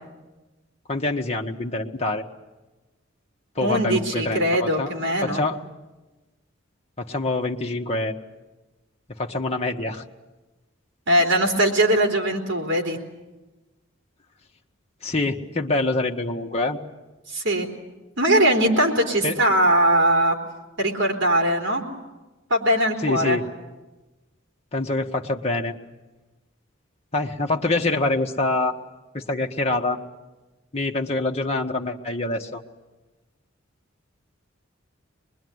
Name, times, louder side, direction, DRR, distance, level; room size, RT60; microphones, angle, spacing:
voice 1, 0.9-2.2 3.5-4.9 5.2-5.6 7.0-8.2 9.2-10.0 15.0-16.8 19.2-19.4 23.0-23.4 24.7-25.7 27.1-28.7 29.1-30.0 30.7-32.6, left 2 dB, 30° left, 1 dB, 1.4 m, -25 dB
voice 2, 3.6-5.4 11.1-13.0 17.3-17.7 18.2-20.4 20.8-21.8 22.5-23.4, right 1 dB, 65° right, 2 dB, 3.7 m, -20 dB
24.5 x 21.5 x 9.5 m, 1.1 s
head